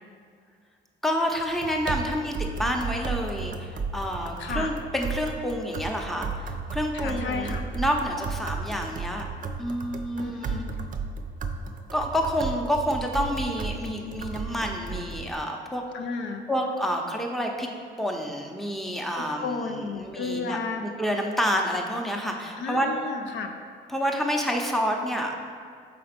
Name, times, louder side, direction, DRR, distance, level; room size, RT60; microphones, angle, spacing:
voice 1, 1.0-9.2 9.6-10.6 11.9-15.8 16.5-17.7 18.0-22.9 23.9-25.3, equal, ahead, 1 dB, 0.7 m, -28 dB
sound 1, 1.4-15.4, right 4 dB, 40° right, 0.5 m, -34 dB
voice 2, 4.4-4.7 6.9-7.6 10.2-10.6 15.9-16.4 19.2-20.8 22.6-23.5, left 4 dB, 70° left, 4 dB, 0.6 m, -32 dB
5.9 x 3.8 x 5.1 m, 2.1 s
cardioid pair, 90°, 20 cm